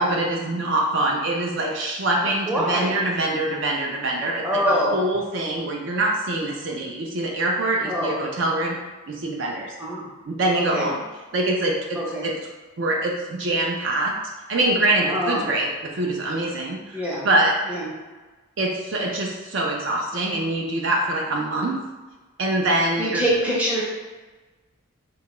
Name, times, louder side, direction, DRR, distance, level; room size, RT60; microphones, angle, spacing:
voice 1, 0.0-8.8 9.1-9.7 10.3-11.0 11.3-12.3 12.8-14.1 14.5-15.7 15.9-17.6 18.6-21.8 22.4-23.2, right 2 dB, 55° right, 0 dB, 0.4 m, -24 dB
voice 2, 2.5-2.9 4.4-5.0 7.8-8.1 9.8-10.1 10.5-10.9 12.0-12.3 15.1-15.5 16.9-17.2 17.7-17.9 23.0-23.8, equal, 5° right, -6 dB, 0.6 m, -24 dB
3.7 x 2.2 x 2.9 m, 1.2 s
head